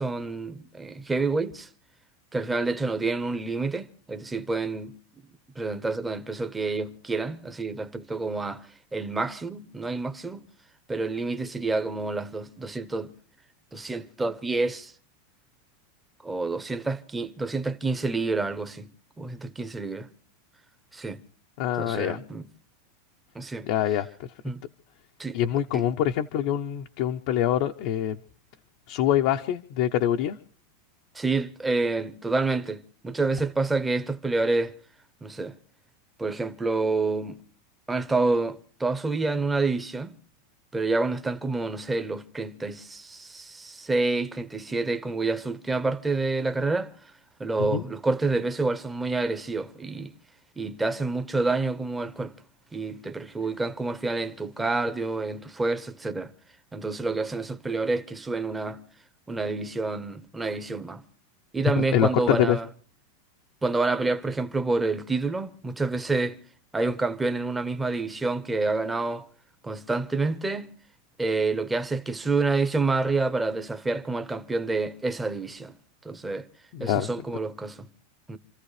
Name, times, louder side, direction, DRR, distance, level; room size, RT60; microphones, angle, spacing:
voice 1, 0.0-1.7 2.3-5.0 5.6-8.7 8.9-10.4 10.9-13.1 13.7-14.9 16.2-18.9 19.2-20.1 20.9-21.2 21.8-22.4 23.3-23.7 24.4-24.6 25.2-25.4 25.7-25.8 31.1-34.7 35.2-35.6 36.2-37.4 37.9-40.2 40.7-46.9 47.4-50.1 50.6-52.3 52.7-56.3 56.7-58.8 59.3-61.0 61.5-62.7 63.6-66.4 66.7-69.3 69.6-70.7 71.2-75.7 76.0-76.5 76.8-77.9 78.3-78.4, right 3 dB, 10° right, 0.8 m, -28 dB
voice 2, 21.6-22.2 23.6-24.1 25.3-28.1 28.9-30.4 47.7-47.8 61.8-62.6 76.7-77.1, left 11 dB, 50° left, 0.7 m, -25 dB
28.5 x 14.5 x 3.2 m
supercardioid pair, 160°, 0 cm